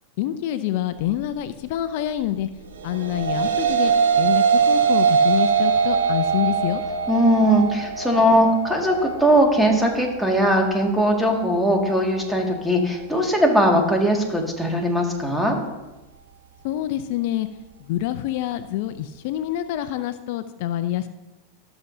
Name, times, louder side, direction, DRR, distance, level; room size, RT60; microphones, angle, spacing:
voice 1, 0.2-2.5 2.8-6.8 16.6-17.5 17.9-21.1, left 12 dB, 65° left, 12 dB, 0.4 m, -26 dB
sound 1, 2.8-12.0, right 6 dB, 85° right, 1.1 m, -22 dB
voice 2, 7.1-15.6, equal, 5° right, 0 dB, 1.9 m, -19 dB
13.5 x 6.8 x 2.7 m, 1.1 s
hypercardioid pair, 105°, 0 cm